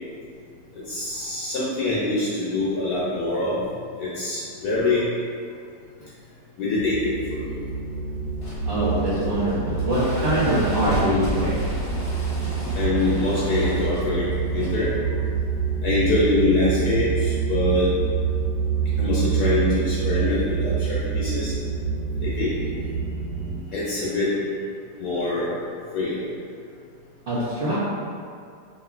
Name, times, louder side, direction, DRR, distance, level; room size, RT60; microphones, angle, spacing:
voice 1, 0.9-3.6 4.0-5.0 6.6-7.5 12.7-14.2 14.5-14.9 15.8-17.9 19.0-21.5 22.2-22.5 23.7-24.3 25.0-25.5 25.9-26.2, left 2 dB, 70° left, -9 dB, 1.1 m, -24 dB
sound 1, 6.7-23.6, right 6 dB, 85° right, 1.4 m, -26 dB
sound 2, 8.3-16.1, equal, 45° left, 0.9 m, -35 dB
voice 2, 8.7-11.6 27.3-27.8, right 1 dB, 65° right, -12 dB, 0.5 m, -23 dB
2.9 x 2.6 x 2.4 m, 2.3 s
omnidirectional pair, 1.8 m